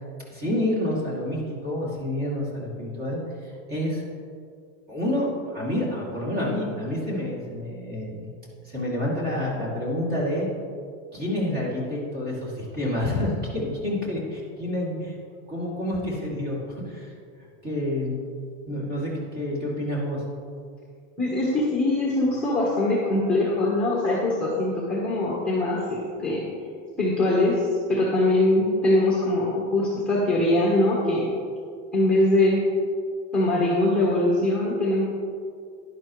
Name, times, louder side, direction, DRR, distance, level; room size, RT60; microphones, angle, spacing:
voice 1, 0.3-4.0 4.9-8.3 8.6-10.5 11.1-15.2 15.5-17.1 17.6-18.2 18.7-20.2, left 1 dB, 25° right, -5 dB, 2.6 m, -28 dB
voice 2, 21.2-26.5 27.0-31.3 31.9-32.6 33.3-35.0, left 1 dB, 5° left, -6 dB, 1.2 m, -22 dB
11.0 x 11.0 x 3.2 m, 2.2 s
cardioid pair, 175°, 37 cm